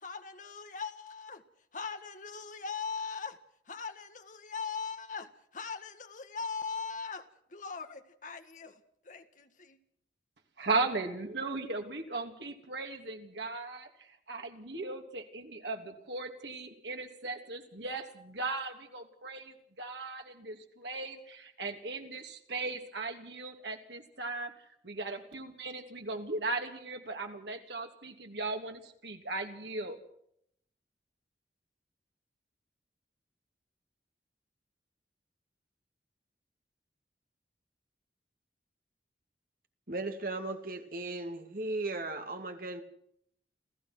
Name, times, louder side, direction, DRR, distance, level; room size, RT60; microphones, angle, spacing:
voice 1, 0.0-1.4 1.7-3.4 3.7-8.8 9.1-9.8, left 5 dB, 45° left, 7 dB, 1.8 m, -40 dB
voice 2, 10.6-24.5 24.8-30.0, right 3 dB, 80° right, 4 dB, 3.1 m, -37 dB
voice 3, 39.9-42.8, right 2 dB, 55° right, 6 dB, 2.3 m, -36 dB
28.5 x 15.5 x 6.2 m, 0.72 s
head